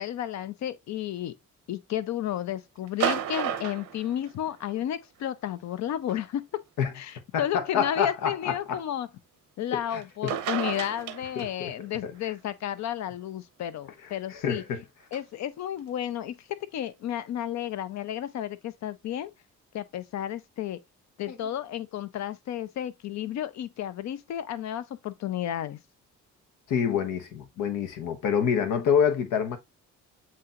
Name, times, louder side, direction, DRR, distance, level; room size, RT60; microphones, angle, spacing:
voice 1, 0.0-1.3 1.7-6.5 6.9-9.1 9.6-14.6 15.1-16.4 16.7-19.3 19.7-20.8 21.2-25.8, left 11 dB, 65° left, 0.6 m, -32 dB
sound 1, 2.9-4.8 6.1-6.2 7.1-7.2 10.0-10.1 10.3-11.7 15.1-15.2, right 10 dB, 80° right, 0.8 m, -31 dB
voice 2, 7.3-8.8 9.9-10.3 11.4-11.7 12.0-12.1 14.3-14.8 21.3-21.4 26.7-29.6, left 7 dB, 85° left, 1.0 m, -27 dB
7.5 x 2.9 x 2.4 m
cardioid pair, 90°, 30 cm